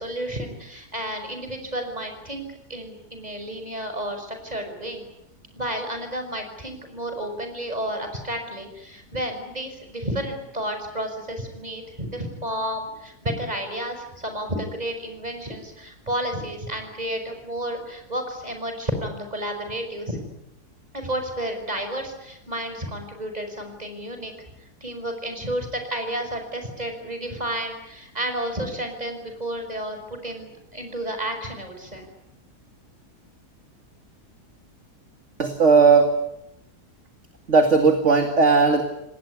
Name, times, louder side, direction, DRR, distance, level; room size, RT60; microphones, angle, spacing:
voice 1, 0.0-5.0 5.6-20.2 20.9-24.3 24.8-32.1, right 1 dB, 25° right, 6 dB, 5.8 m, -31 dB
voice 2, 35.4-36.1 37.5-38.8, right 4 dB, 45° right, 6 dB, 2.4 m, -16 dB
28.5 x 19.5 x 9.7 m, 0.83 s
omnidirectional pair, 1.7 m